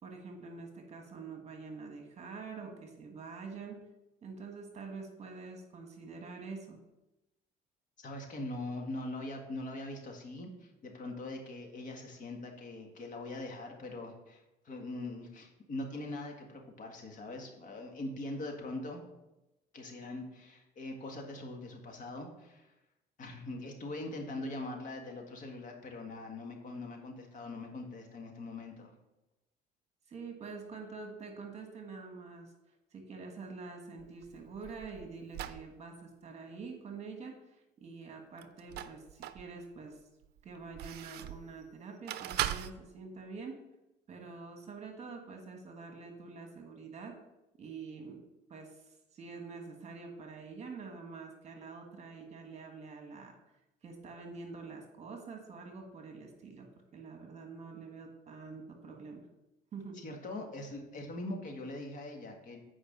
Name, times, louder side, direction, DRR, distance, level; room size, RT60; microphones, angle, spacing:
voice 1, 0.0-3.9 4.2-6.8 30.1-32.5 32.9-40.0 40.4-43.6 44.1-47.2 47.6-48.2 48.5-53.4 53.8-56.7 56.9-59.3 59.7-60.0, right 4 dB, 40° right, 3 dB, 1.5 m, -46 dB
voice 2, 8.0-19.0 19.7-22.7 23.2-28.9 60.0-62.6, left 2 dB, 50° left, 2 dB, 1.7 m, -42 dB
sound 1, 34.0-35.7 38.4-39.5 40.0-41.5 42.1-42.7, right 12 dB, 70° right, 0.5 m, -39 dB
8.7 x 4.9 x 5.3 m, 0.95 s
cardioid pair, 110°, 17 cm